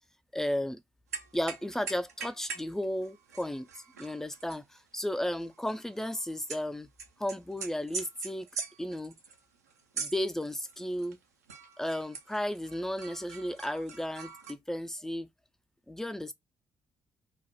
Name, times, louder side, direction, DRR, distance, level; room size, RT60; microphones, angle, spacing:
voice 1, 0.3-0.8 1.3-3.7 4.0-6.9 7.2-8.5 8.8-9.2 10.0-11.2 11.8-15.3 15.9-16.3, left 1 dB, 5° left, 0.3 m, -34 dB
sound 1, 1.1-2.7 3.0-6.6 7.0-11.2 11.5-14.5, right 5 dB, 90° right, 0.4 m, -43 dB
2.2 x 2.0 x 2.9 m
hypercardioid pair, 40°, 8 cm